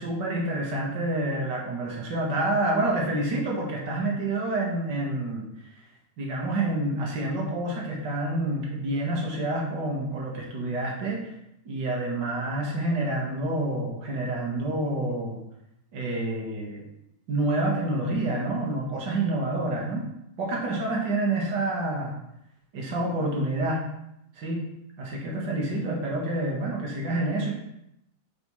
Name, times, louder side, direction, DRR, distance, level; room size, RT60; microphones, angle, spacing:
voice 1, 0.0-5.5 6.2-11.3 11.7-15.4 15.9-16.8 17.3-20.1 20.4-22.1 22.7-23.8 24.4-24.7 25.0-27.5, right 2 dB, 45° right, -2 dB, 1.7 m, -28 dB
9.5 x 5.2 x 3.2 m, 0.81 s
omnidirectional pair, 3.5 m